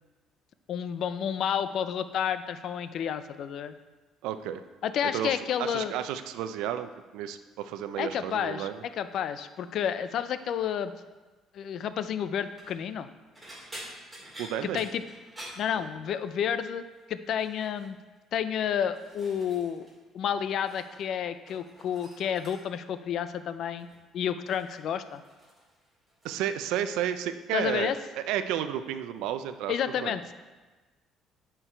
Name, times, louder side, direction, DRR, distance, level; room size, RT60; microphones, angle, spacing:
voice 1, 0.7-3.7 4.8-5.9 8.0-10.9 11.5-13.1 14.6-15.0 15.6-16.8 17.1-18.0 18.3-19.9 20.1-23.9 24.1-25.2 27.5-28.0 29.7-30.3, left 8 dB, 55° left, 12 dB, 0.4 m, -30 dB
voice 2, 4.2-4.6 5.1-8.8 14.4-14.8 15.8-15.9 26.2-29.7 30.0-30.2, right 10 dB, 85° right, 10 dB, 0.5 m, -32 dB
sound 1, 12.4-12.8 13.3-16.4 16.7-17.0 17.4-17.9 18.5-20.0 20.2-21.1 21.4-22.9 23.8-24.1 24.5-26.5 26.8-27.3 27.7-27.9 29.2-29.3, right 1 dB, 10° right, 2.6 m, -49 dB
10.0 x 4.6 x 4.5 m, 1.2 s
cardioid pair, 135°, 0 cm